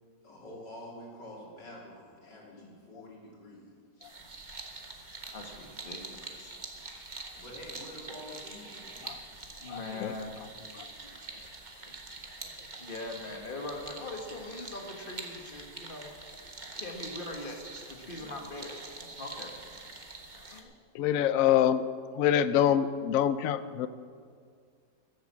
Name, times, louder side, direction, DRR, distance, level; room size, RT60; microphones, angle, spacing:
voice 1, 0.2-3.7 7.4-9.2, left 1 dB, 85° left, -3 dB, 3.6 m, -47 dB
sound 1, 4.0-20.6, right 3 dB, 30° right, 1.2 m, -45 dB
voice 2, 5.3-6.6 9.6-10.4 10.7-11.1 11.8-11.9 12.2-12.3 12.6-16.1 16.7-17.6 17.9-19.8 20.5-20.7, left 2 dB, 30° left, 2 dB, 1.7 m, -42 dB
voice 3, 9.7-10.1 10.8-10.9 20.9-21.8 22.1-23.9, left 10 dB, 65° left, 13 dB, 0.9 m, -25 dB
14.0 x 8.2 x 7.4 m, 2.1 s
omnidirectional pair, 1.8 m